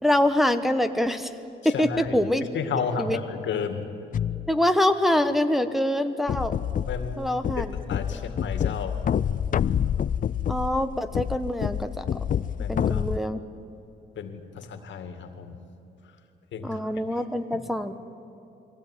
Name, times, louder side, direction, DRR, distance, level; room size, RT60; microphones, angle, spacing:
voice 1, 0.0-1.3 1.6-2.5 3.0-3.2 4.5-6.5 7.2-7.7 10.5-12.1 12.7-13.4 16.6-17.9, left 1 dB, ahead, 7 dB, 1.1 m, -24 dB
voice 2, 1.6-2.2 2.5-3.8 6.8-9.0 12.6-13.1 14.2-15.6 16.5-17.2 17.5-17.6, left 6 dB, 70° left, 7 dB, 2.2 m, -33 dB
sound 1, 4.1-4.6 6.3-13.2, left 9 dB, 40° left, 0.5 m, -27 dB
22.5 x 16.5 x 9.7 m, 2.9 s
cardioid pair, 90°, 20 cm